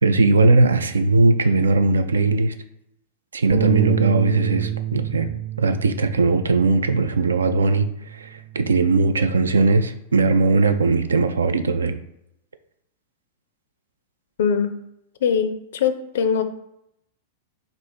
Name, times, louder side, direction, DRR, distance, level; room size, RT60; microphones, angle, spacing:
voice 1, 0.0-2.5 3.3-5.3 5.6-12.0, right 3 dB, 75° right, 10 dB, 0.3 m, -19 dB
Bass guitar, 3.5-8.0 8.4-9.8, right 10 dB, 35° right, 0.7 m, -28 dB
voice 2, 14.4-14.7 15.2-16.4, left 7 dB, 60° left, 10 dB, 0.4 m, -21 dB
3.5 x 2.5 x 4.2 m, 0.81 s
figure-of-eight pair, 95°, 0 cm